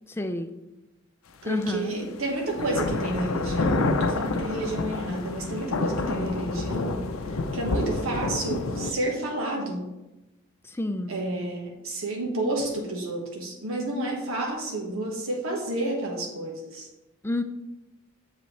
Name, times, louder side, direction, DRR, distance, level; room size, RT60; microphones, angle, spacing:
voice 1, 0.1-0.5 1.4-1.9 10.6-11.1 17.2-17.4, left 1 dB, 10° left, 7 dB, 0.5 m, -29 dB
voice 2, 1.4-7.0 7.3-9.8 11.1-16.9, right 1 dB, 80° right, 0 dB, 1.5 m, -30 dB
sound 1, 1.6-1.7 2.5-8.9, left 3 dB, 75° left, 0.6 m, -28 dB
7.7 x 6.8 x 3.3 m, 1.0 s
head